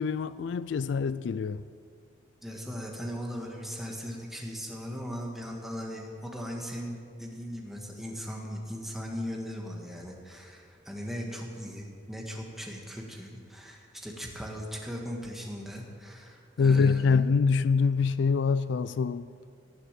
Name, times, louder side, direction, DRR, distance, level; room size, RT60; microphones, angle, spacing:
voice 1, 0.0-1.6 16.6-19.3, left 5 dB, 70° left, 0.3 m, -25 dB
voice 2, 2.4-17.2, equal, ahead, 1.7 m, -38 dB
18.0 x 7.0 x 7.5 m
head